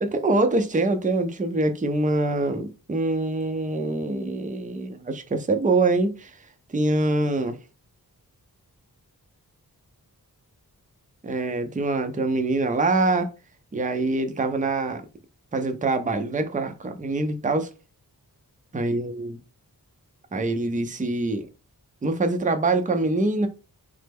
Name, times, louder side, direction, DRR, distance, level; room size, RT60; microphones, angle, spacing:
voice 1, 0.0-6.4 6.7-7.6 11.2-13.3 13.7-15.0 15.5-17.7 18.7-19.4 20.3-21.5 22.0-23.5, right 2 dB, 20° right, 0.5 m, -24 dB
3.2 x 2.0 x 3.4 m
wide cardioid pair, 60°, 38 cm